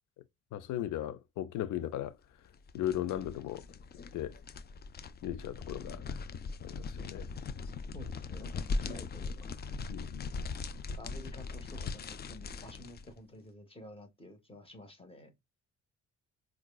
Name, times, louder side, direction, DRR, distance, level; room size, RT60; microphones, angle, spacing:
voice 1, 0.5-2.2 2.7-3.6 4.1-4.3 5.2-6.2 6.6-7.3 9.9-10.3, left 12 dB, 80° left, 0.6 m, -37 dB
sound 1, 2.4-13.1, left 4 dB, 35° left, 0.4 m, -40 dB
voice 2, 7.9-9.8 10.9-15.3, left 1 dB, 20° left, 1.4 m, -50 dB
4.6 x 2.3 x 2.3 m
cardioid pair, 90°, 30 cm